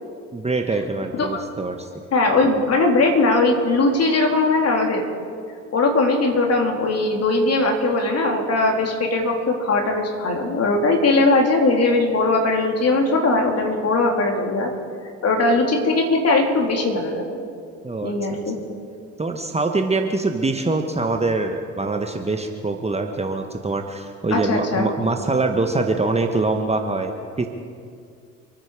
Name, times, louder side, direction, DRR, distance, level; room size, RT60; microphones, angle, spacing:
voice 1, 0.3-1.9 17.8-18.1 19.2-27.5, right 3 dB, 15° right, 4 dB, 1.4 m, -24 dB
voice 2, 2.1-5.0 5.7-14.7 15.2-17.3 18.0-18.6 24.3-24.9, left 2 dB, 40° left, 1 dB, 3.7 m, -19 dB
28.5 x 9.5 x 5.0 m, 2.3 s
hypercardioid pair, 65°, 39 cm